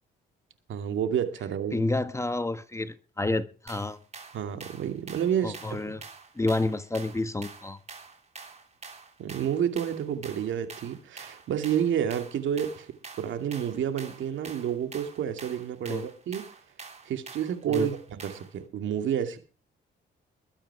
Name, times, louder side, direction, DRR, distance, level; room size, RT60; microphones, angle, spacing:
voice 1, 0.7-1.8 4.3-5.9 9.2-16.5 17.1-19.4, right 9 dB, 75° right, 2.5 m, -30 dB
voice 2, 1.7-4.0 5.4-6.0 6.3-7.8 15.8-16.0 17.7-17.9, left 2 dB, 15° left, 1.3 m, -29 dB
sound 1, 3.7-18.6, right 4 dB, 35° right, 3.8 m, -46 dB
21.5 x 8.9 x 4.8 m
cardioid pair, 90°, 20 cm